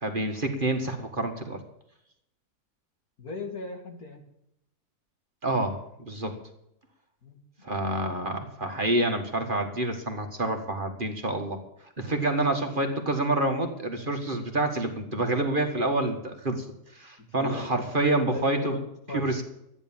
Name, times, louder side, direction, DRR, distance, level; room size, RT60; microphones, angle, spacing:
voice 1, 0.0-1.6 5.4-6.3 7.6-11.6 12.0-16.7 16.9-18.8 19.1-19.4, right 2 dB, 35° right, 4 dB, 1.8 m, -27 dB
voice 2, 3.2-4.2 7.2-7.4 17.4-17.7 18.3-19.4, left 3 dB, 70° left, 2 dB, 3.0 m, -37 dB
13.5 x 9.9 x 7.3 m, 0.80 s
omnidirectional pair, 1.7 m